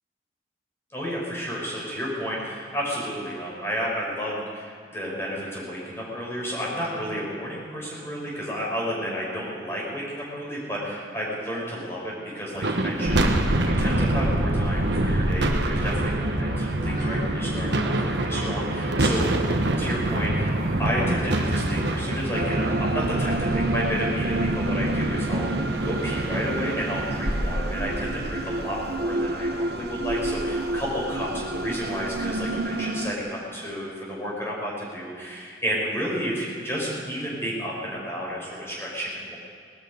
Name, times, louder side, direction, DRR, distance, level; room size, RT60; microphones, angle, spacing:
voice 1, 0.9-19.3 19.8-25.6 25.8-39.4, equal, 15° left, -5 dB, 5.1 m, -31 dB
sound 1, 12.6-28.9, right 1 dB, 80° right, 1.2 m, -26 dB
Purr / Meow, 13.0-32.5, equal, 40° left, 2.9 m, -36 dB
sound 2, 22.3-33.1, right 2 dB, 60° right, 0.8 m, -30 dB
19.0 x 12.5 x 5.4 m, 2.2 s
head